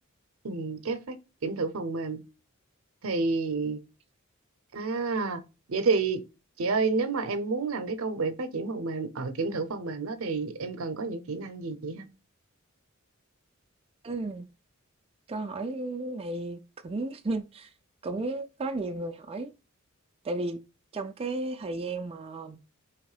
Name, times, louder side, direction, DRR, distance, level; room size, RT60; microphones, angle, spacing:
voice 1, 0.4-2.2 3.0-3.8 4.7-5.4 5.7-6.2 6.6-12.1, right 4 dB, 70° right, 0.7 m, -30 dB
voice 2, 14.0-14.5 15.3-17.7 18.0-19.5 20.2-20.6 20.9-22.6, right 2 dB, 25° right, 0.4 m, -33 dB
3.6 x 3.0 x 4.8 m
head